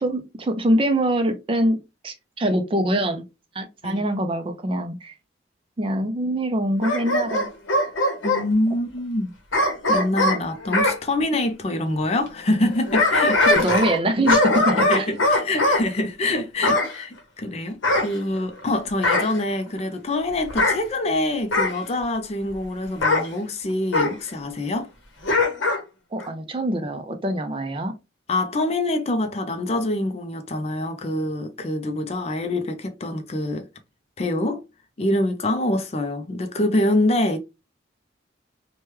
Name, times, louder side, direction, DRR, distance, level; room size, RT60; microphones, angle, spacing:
voice 1, 0.0-3.2 3.5-5.1 5.8-7.4 13.4-15.0 26.1-27.9, right 1 dB, 30° right, 0.4 m, -24 dB
Bark / Growling, 6.8-8.4 9.5-11.0 12.6-14.0 14.3-15.8 16.6-16.9 17.8-18.6 19.0-19.4 20.5-20.8 21.5-21.8 23.0-23.3 23.9-24.1 25.2-25.8 26.2-26.3, left 2 dB, 90° left, 0.9 m, -21 dB
voice 2, 8.2-9.3 9.9-13.4 14.8-24.9 28.3-33.7 34.2-34.6 35.0-37.4, left 1 dB, 35° left, 0.4 m, -25 dB
3.1 x 2.2 x 3.1 m
head